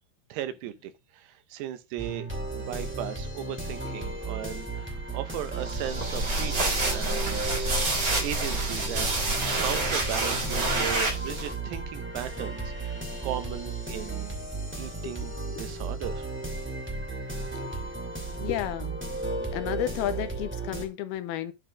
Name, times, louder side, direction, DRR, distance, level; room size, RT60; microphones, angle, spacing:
voice 1, 0.3-2.3 2.5-9.2 9.6-14.3 14.8-16.3, right 12 dB, 85° right, 3.0 m, -37 dB
sound 1, 2.0-20.9, right 2 dB, 5° right, 1.3 m, -34 dB
sound 2, 5.6-11.5, right 2 dB, 45° right, 1.1 m, -28 dB
voice 2, 18.4-19.0 19.4-21.5, left 12 dB, 80° left, 2.5 m, -32 dB
9.3 x 3.9 x 5.0 m
omnidirectional pair, 4.7 m